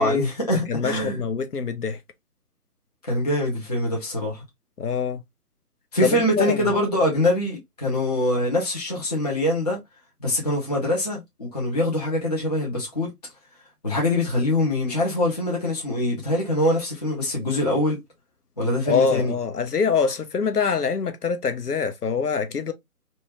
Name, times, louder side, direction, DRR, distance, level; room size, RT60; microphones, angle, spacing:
voice 1, 0.0-1.2 3.1-4.4 5.9-9.8 10.2-13.1 13.8-18.0 18.6-19.3, left 1 dB, 25° left, 0.7 m, -24 dB
voice 2, 0.7-2.0 4.8-5.2 6.0-6.7 18.8-22.7, left 5 dB, 80° left, 0.7 m, -24 dB
2.8 x 2.2 x 2.8 m
figure-of-eight pair, 145°, 46 cm